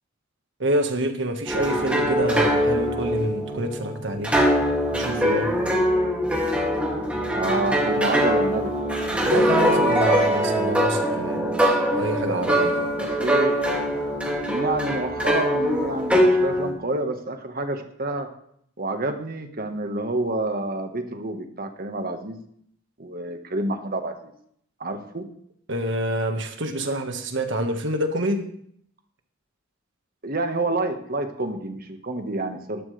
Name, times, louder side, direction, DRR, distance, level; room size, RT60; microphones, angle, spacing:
voice 1, 0.6-4.3 4.9-5.6 9.3-11.5 11.9-12.8 25.7-28.5, right 1 dB, 65° right, 5 dB, 1.7 m, -27 dB
sound 1, 1.5-16.7, equal, 5° right, 2.6 m, -22 dB
voice 2, 7.3-8.7 13.0-13.6 14.5-18.3 18.8-22.4 23.0-24.3 24.8-25.2 30.2-32.8, right 2 dB, 50° right, 6 dB, 1.6 m, -28 dB
19.0 x 12.0 x 3.4 m, 0.67 s
head